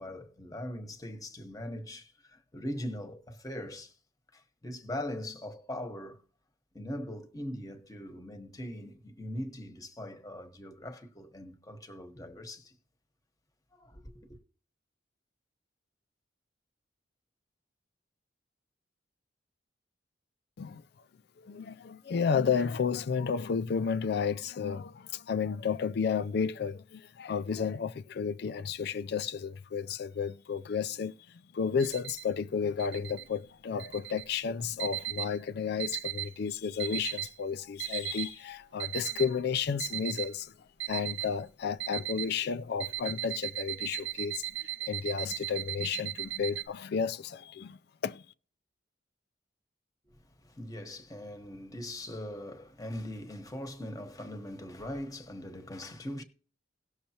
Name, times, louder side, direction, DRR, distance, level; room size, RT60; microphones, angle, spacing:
voice 1, 0.0-3.9 4.3-6.2 6.7-12.8 13.7-14.3 50.0-56.2, left 1 dB, 20° left, 1.1 m, -41 dB
voice 2, 21.4-48.2, left 6 dB, 60° left, 0.4 m, -32 dB
sound 1, 31.8-32.2 32.8-33.2 33.8-34.2 34.8-35.4 35.8-36.4 36.8-37.4 37.8-38.4 38.8-39.4 39.8-40.4 40.8-41.4 41.8-42.4 42.8-46.7, right 15 dB, 75° right, 0.6 m, -37 dB
18.0 x 6.5 x 2.9 m
head